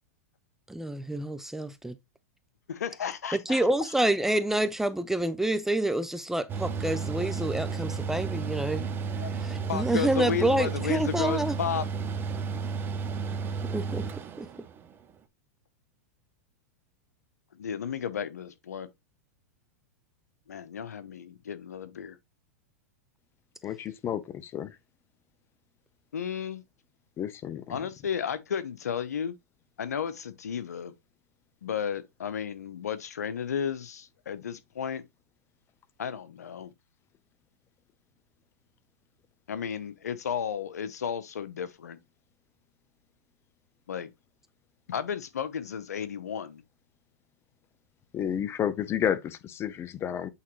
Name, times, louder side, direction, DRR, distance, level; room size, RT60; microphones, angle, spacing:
voice 1, 0.7-2.0 3.3-8.9 9.3-11.6 13.7-14.1 14.4-14.5, right 1 dB, 5° right, 0.6 m, -28 dB
voice 2, 2.7-3.6 9.2-9.3 9.7-11.8 17.5-18.9 20.5-22.2 26.1-26.6 27.7-29.3 29.8-30.9 31.6-35.0 36.0-36.7 39.5-42.0 43.9-44.1 44.9-46.6, left 8 dB, 85° left, 0.8 m, -33 dB
Mechanical fan, 6.5-14.9, right 5 dB, 25° right, 1.0 m, -32 dB
voice 3, 23.6-24.8 27.2-27.8 48.1-50.3, left 9 dB, 30° left, 0.9 m, -31 dB
8.4 x 3.8 x 3.2 m
hypercardioid pair, 115°, 8 cm